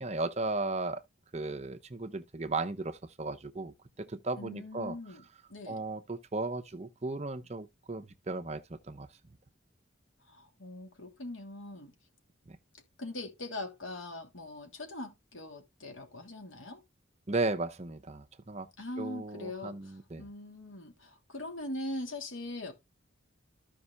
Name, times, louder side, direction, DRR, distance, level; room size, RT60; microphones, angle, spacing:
voice 1, 0.0-1.0 1.3-5.0 5.7-9.1 12.5-12.6 17.3-18.7 19.0-20.2, right 3 dB, 35° right, 0.8 m, -35 dB
voice 2, 4.4-5.2 5.5-5.8 10.3-11.9 13.0-16.8 18.8-19.9 20.2-22.7, left 1 dB, 90° left, 2.9 m, -41 dB
14.0 x 5.4 x 2.3 m
head